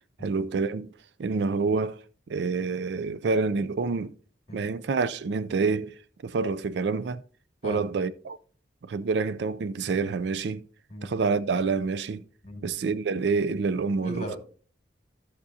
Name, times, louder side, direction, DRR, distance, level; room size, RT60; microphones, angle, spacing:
voice 1, 0.2-0.9 1.2-2.0 2.3-4.1 4.5-5.9 6.2-7.2 7.6-8.4 8.9-10.6 11.0-12.2 12.6-14.3, right 4 dB, 65° right, 0.4 m, -27 dB
voice 2, 14.0-14.4, equal, 35° left, 2.2 m, -37 dB
12.5 x 6.7 x 2.7 m
head